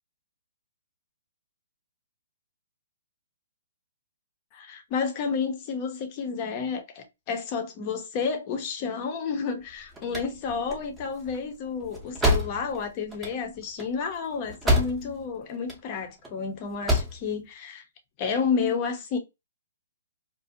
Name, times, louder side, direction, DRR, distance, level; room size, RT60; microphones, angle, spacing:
voice 1, 4.5-17.8 18.2-19.2, left 5 dB, 30° left, 0.6 m, -31 dB
sound 1, 9.7-15.3 15.5-16.3 16.7-17.2, equal, 5° right, 0.6 m, -28 dB
2.4 x 2.1 x 2.6 m
hypercardioid pair, 155°, 0 cm